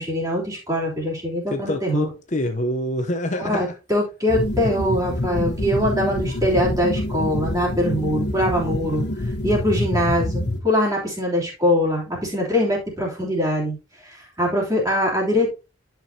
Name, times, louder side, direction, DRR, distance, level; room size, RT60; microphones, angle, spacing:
voice 1, 0.0-2.1 3.4-9.0 9.4-13.8 14.0-14.1 14.4-15.5, equal, 15° right, 3.1 m, -22 dB
voice 2, 1.5-3.8, left 1 dB, 35° left, 0.7 m, -26 dB
sound 1, 4.3-10.6, left 1 dB, 55° left, 1.1 m, -26 dB
11.0 x 6.0 x 2.8 m
head